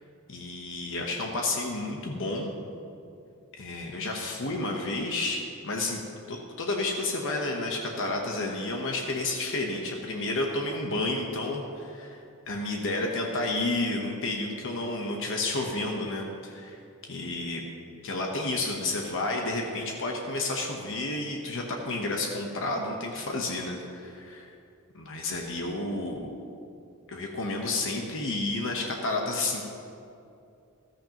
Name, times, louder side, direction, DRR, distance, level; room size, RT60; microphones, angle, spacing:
voice 1, 0.3-2.5 3.5-6.0 6.3-12.2 12.5-16.8 17.1-17.6 18.0-24.5 24.9-26.4 27.1-29.6, left 2 dB, 60° left, 1 dB, 1.1 m, -31 dB
14.5 x 13.5 x 3.0 m, 2.6 s
head